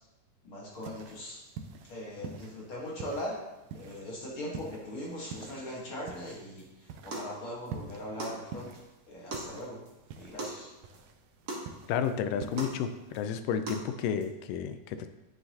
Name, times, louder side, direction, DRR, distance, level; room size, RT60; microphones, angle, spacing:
voice 1, 0.4-1.4 1.8-3.4 3.7-9.8 10.2-10.7, left 1 dB, 50° left, -4 dB, 1.9 m, -40 dB
sound 1, 0.7-13.2, right 6 dB, 80° right, 1.6 m, -47 dB
sound 2, 6.6-6.7 7.1-7.3 7.7-7.8 8.2-8.4 8.8-8.9 9.3-9.5 9.9-10.0 10.4-10.6 10.9-11.0 11.5-11.7 12.0-12.1 12.6-12.8 13.1-13.2 13.7-13.9 14.2-14.3, right 2 dB, 50° right, 1.2 m, -38 dB
voice 2, 11.9-15.1, left 7 dB, 90° left, 10 dB, 2.2 m, -31 dB
9.3 x 7.7 x 2.8 m, 1.0 s
omnidirectional pair, 3.7 m